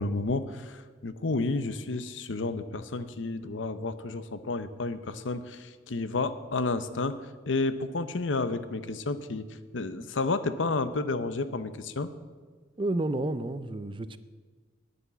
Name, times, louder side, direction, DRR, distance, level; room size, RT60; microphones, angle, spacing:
voice 1, 0.0-9.5 9.7-12.1, left 3 dB, 90° left, 12 dB, 0.8 m, -31 dB
voice 2, 12.8-14.2, right 2 dB, 25° right, 14 dB, 0.5 m, -30 dB
10.0 x 9.8 x 8.2 m, 1.5 s
head